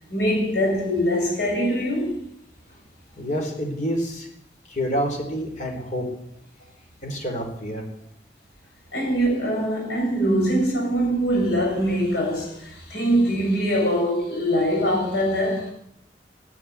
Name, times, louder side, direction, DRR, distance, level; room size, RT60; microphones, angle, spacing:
voice 1, 0.1-2.2 8.9-15.7, equal, 70° left, 6.7 m, -23 dB
voice 2, 3.2-4.3 4.7-6.1 7.0-7.8, equal, 40° left, 4.1 m, -28 dB
14.5 x 10.0 x 9.6 m
head